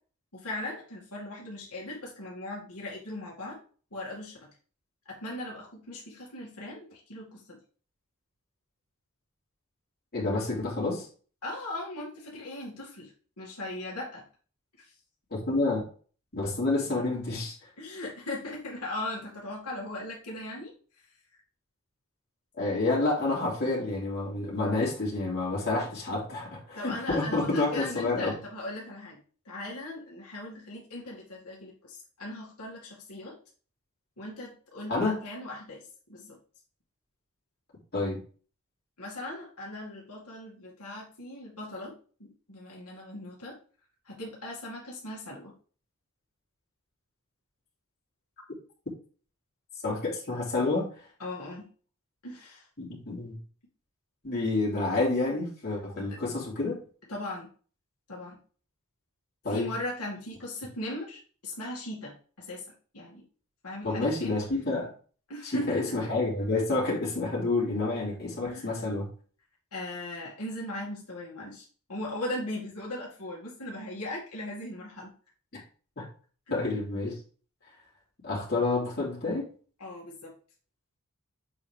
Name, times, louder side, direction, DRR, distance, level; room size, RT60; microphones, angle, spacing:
voice 1, 0.3-3.6 3.9-4.5 5.1-7.6 11.4-13.1 13.4-14.2 17.8-20.7 26.7-29.2 29.4-33.3 34.2-35.8 36.1-36.4 39.0-41.9 42.2-43.6 44.1-45.5 51.2-51.7 52.2-52.6 56.0-56.2 57.1-57.5 58.1-58.4 59.5-62.6 62.9-63.2 63.6-64.4 65.3-66.0 68.4-68.9 69.7-75.1 76.5-76.7 79.8-80.3, left 1 dB, 85° left, -4 dB, 2.5 m, -38 dB
voice 2, 10.1-11.1 15.3-15.9 16.3-17.7 22.6-28.3 34.9-35.2 37.9-38.2 49.8-50.9 52.8-53.4 54.2-56.8 59.4-59.7 63.8-64.9 65.4-69.1 75.5-75.6 76.0-76.1 76.5-77.2 78.2-79.5, left 2 dB, 45° left, -4 dB, 3.4 m, -29 dB
7.7 x 4.9 x 3.4 m, 0.40 s
head